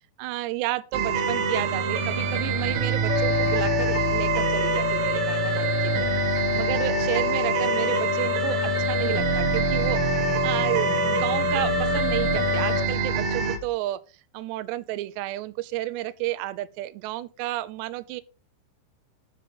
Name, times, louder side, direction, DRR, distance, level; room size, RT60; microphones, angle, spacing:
voice 1, 0.2-6.1 6.5-14.0 14.3-18.2, right 17 dB, 85° right, 2.7 m, -31 dB
sound 1, 0.9-13.6, right 5 dB, 65° right, 1.9 m, -26 dB
sound 2, 3.1-12.9, left 12 dB, 80° left, 2.4 m, -28 dB
8.5 x 6.3 x 6.6 m
omnidirectional pair, 5.0 m